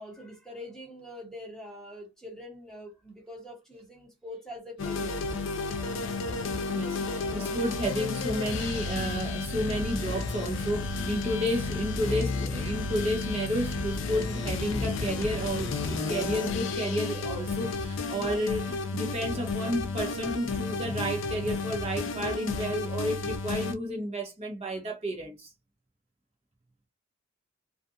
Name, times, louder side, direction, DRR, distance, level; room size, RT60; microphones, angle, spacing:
voice 1, 0.0-5.2, left 1 dB, 5° left, 1.1 m, -44 dB
sound 1, 4.8-23.7, left 3 dB, 70° left, 0.5 m, -32 dB
voice 2, 6.7-25.5, equal, 30° right, 0.9 m, -31 dB
2.5 x 2.3 x 2.6 m
head